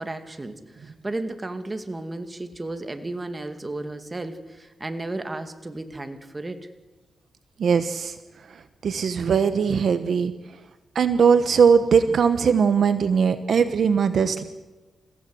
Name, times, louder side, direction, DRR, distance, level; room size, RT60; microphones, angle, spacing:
voice 1, 0.0-6.7, right 2 dB, 20° right, 8 dB, 2.3 m, -34 dB
voice 2, 7.6-8.1 8.8-10.3 10.9-14.4, right 6 dB, 65° right, 10 dB, 1.3 m, -20 dB
30.0 x 16.0 x 7.9 m, 1.1 s
cardioid pair, 85°, 0 cm